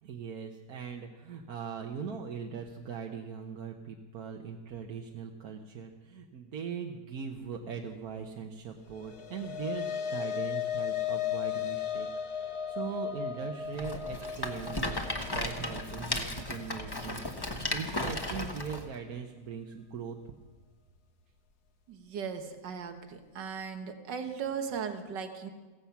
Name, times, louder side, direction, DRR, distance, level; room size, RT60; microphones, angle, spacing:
voice 1, 0.0-20.3, right 6 dB, 60° right, 2 dB, 1.4 m, -40 dB
sound 1, 8.9-17.5, left 9 dB, 65° left, 1.5 m, -36 dB
Rattle, 13.7-18.8, left 1 dB, 15° left, 1.1 m, -35 dB
voice 2, 21.9-25.5, right 6 dB, 85° right, 7 dB, 1.9 m, -37 dB
16.0 x 15.5 x 5.8 m, 1.3 s
omnidirectional pair, 1.9 m